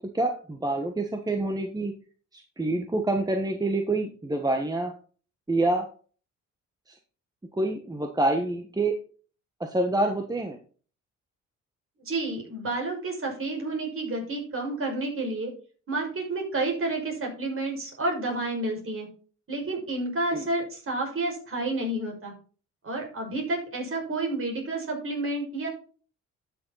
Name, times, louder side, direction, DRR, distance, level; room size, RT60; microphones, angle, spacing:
voice 1, 0.1-1.9 2.3-4.9 5.5-5.9 6.9-7.0 7.5-8.9 9.6-10.6 20.3-20.5, right 2 dB, 15° right, 4 dB, 1.4 m, -27 dB
voice 2, 12.0-15.5 15.9-19.1 19.5-22.3 22.8-25.7, right 2 dB, 45° right, 1 dB, 6.0 m, -30 dB
12.0 x 6.7 x 4.1 m, 0.40 s
cardioid pair, 90°, 30 cm